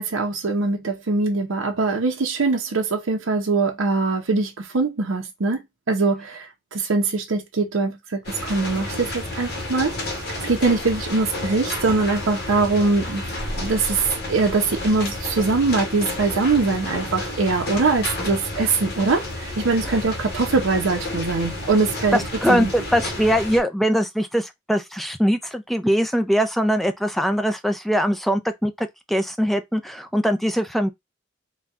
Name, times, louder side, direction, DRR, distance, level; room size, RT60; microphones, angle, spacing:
voice 1, 0.0-5.6 5.9-9.9 10.4-22.2 22.5-22.7, right 3 dB, 90° right, 0.7 m, -22 dB
sound 1, 8.2-23.6, left 1 dB, 50° left, 1.2 m, -31 dB
voice 2, 22.1-30.9, equal, ahead, 0.3 m, -22 dB
4.2 x 2.3 x 3.5 m
head